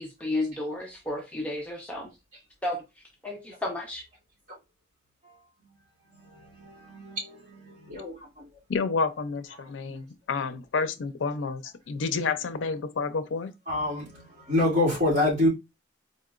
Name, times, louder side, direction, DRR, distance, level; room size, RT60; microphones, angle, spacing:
voice 1, 0.0-2.1 2.6-2.8 3.2-4.0, left 1 dB, 5° left, 0.5 m, -32 dB
voice 2, 6.3-7.4 7.8-8.2 13.7-14.2 14.5-15.5, left 1 dB, 40° right, 2.1 m, -26 dB
voice 3, 8.7-13.5, left 4 dB, 90° left, 0.5 m, -30 dB
4.2 x 2.8 x 2.4 m
head